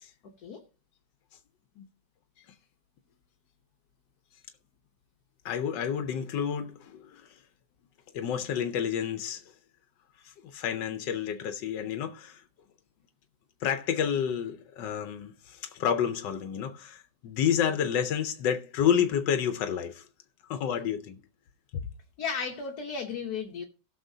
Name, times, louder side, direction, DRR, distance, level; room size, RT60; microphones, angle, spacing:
voice 1, 5.4-7.3 8.1-9.4 10.2-12.4 13.6-20.1 20.5-21.2 21.7-21.8, left 8 dB, 90° left, 1.4 m, -30 dB
voice 2, 22.2-23.6, left 5 dB, 65° left, 1.5 m, -34 dB
17.5 x 6.5 x 2.7 m
omnidirectional pair, 1.9 m